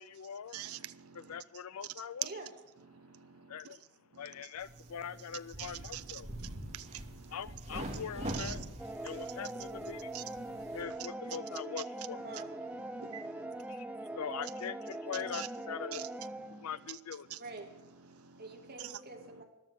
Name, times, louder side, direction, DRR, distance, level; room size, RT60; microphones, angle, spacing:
voice 1, 0.0-0.6 1.1-2.3 3.5-3.8 4.2-6.3 7.3-8.6 9.0-10.1 10.7-12.2 13.7-13.8 14.2-16.0 16.6-17.3, left 7 dB, 75° left, 0.5 m, -42 dB
voice 2, 0.5-1.2 2.9-3.3 5.6-6.0 6.4-7.3 8.4-8.5 10.1-10.2 13.0-13.5 15.3-15.5 15.9-16.0 16.5-16.7 17.3-17.4 18.2-18.4, right 12 dB, 70° right, 0.6 m, -45 dB
voice 3, 2.2-2.5 12.2-12.5 17.4-17.7 18.4-19.4, right 2 dB, 45° right, 2.5 m, -46 dB
sound 1, 4.6-10.8, right 1 dB, 30° right, 2.4 m, -44 dB
sound 2, 8.8-16.8, right 1 dB, 5° right, 0.6 m, -42 dB
13.5 x 12.0 x 6.5 m
head